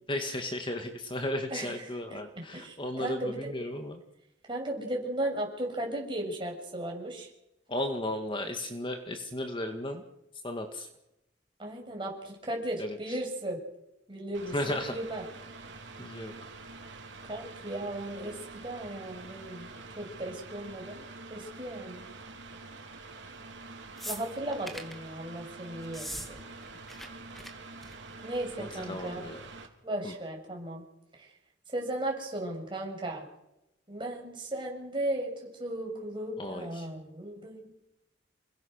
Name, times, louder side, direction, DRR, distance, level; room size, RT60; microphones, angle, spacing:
voice 1, 0.1-4.0 7.7-10.0 10.4-10.9 12.8-13.0 14.5-14.9 16.0-16.3 28.6-29.4 30.0-30.1 36.4-36.9, left 1 dB, 25° left, 5 dB, 2.1 m, -35 dB
voice 2, 1.5-1.8 2.1-3.5 4.5-7.3 11.6-13.6 14.1-15.2 17.3-19.7 20.0-22.1 24.0-26.4 28.2-29.3 29.8-30.8 31.1-31.3 31.7-33.2 33.9-37.7, right 1 dB, 25° right, 0 dB, 7.5 m, -36 dB
Mechanical fan, 14.3-29.7, right 3 dB, 65° right, 4.2 m, -46 dB
sound 1, 24.0-25.0 25.8-26.3 26.6-27.1 27.3-27.5 27.8-28.1 29.1-29.2, equal, ahead, 2.7 m, -40 dB
29.0 x 22.5 x 6.7 m, 0.89 s
head